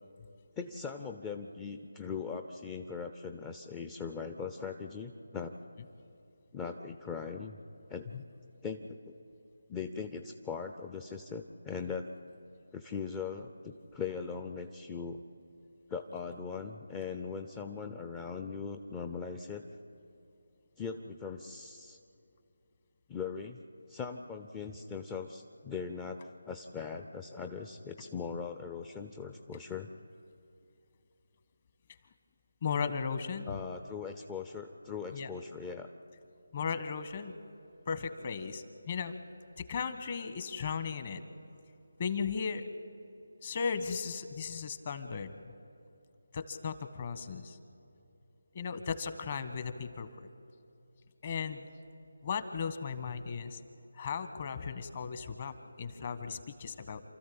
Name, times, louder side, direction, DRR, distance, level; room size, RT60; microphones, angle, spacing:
voice 1, 0.6-5.5 6.5-7.6 7.9-8.1 8.6-9.1 9.7-12.1 12.7-15.2 15.9-19.6 20.8-22.0 23.1-23.6 23.9-29.9 33.5-35.9, left 5 dB, 15° left, 5 dB, 0.6 m, -40 dB
voice 2, 32.6-33.5 35.1-35.3 36.5-37.3 37.9-39.1 39.6-41.2 42.0-42.6 43.4-45.3 46.3-47.6 48.5-50.1 51.2-51.7 52.2-53.6 53.9-57.0, left 6 dB, 35° left, 10 dB, 1.4 m, -36 dB
28.5 x 13.5 x 8.7 m, 2.8 s
figure-of-eight pair, 160°, 0 cm